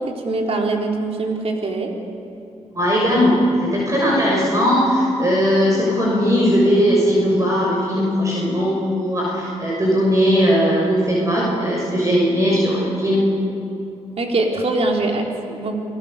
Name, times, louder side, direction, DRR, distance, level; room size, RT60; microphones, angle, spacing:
voice 1, 0.0-1.9 14.2-15.8, right 2 dB, 60° right, 0 dB, 3.9 m, -22 dB
voice 2, 2.7-13.3, equal, 25° right, -4 dB, 6.4 m, -18 dB
28.5 x 19.0 x 7.0 m, 2.7 s
cardioid pair, 80°, 12 cm